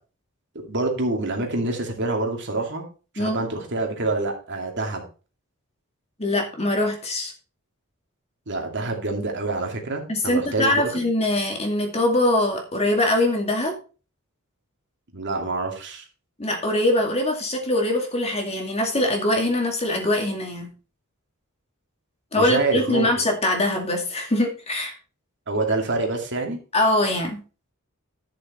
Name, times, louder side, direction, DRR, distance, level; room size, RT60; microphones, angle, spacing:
voice 1, 0.5-2.8 3.1-5.0 8.5-10.9 15.1-16.0 22.3-23.1 25.5-26.6, right 2 dB, 55° right, 2 dB, 2.5 m, -26 dB
voice 2, 6.2-7.3 10.1-13.8 16.4-20.7 22.3-24.9 26.7-27.4, left 1 dB, 30° left, 2 dB, 2.3 m, -23 dB
11.5 x 6.9 x 4.3 m, 0.35 s
head